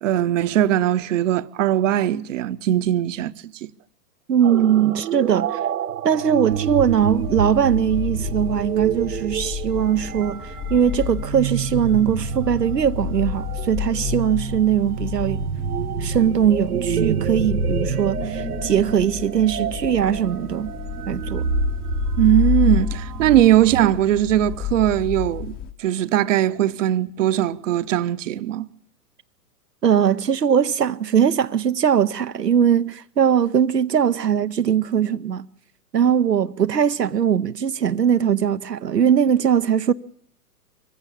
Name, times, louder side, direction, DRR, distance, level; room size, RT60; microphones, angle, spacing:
voice 1, 0.0-3.7 22.2-28.7, right 12 dB, 50° right, 0.9 m, -20 dB
voice 2, 4.3-5.6 6.0-15.5 16.0-20.7 21.1-21.5 29.8-35.5 35.9-39.9, right 8 dB, 90° right, 0.8 m, -20 dB
sound 1, 4.4-23.8, right 8 dB, 70° right, 1.3 m, -28 dB
sound 2, 6.5-25.7, left 10 dB, 20° left, 0.8 m, -30 dB
23.5 x 15.5 x 8.6 m
figure-of-eight pair, 110°, 47 cm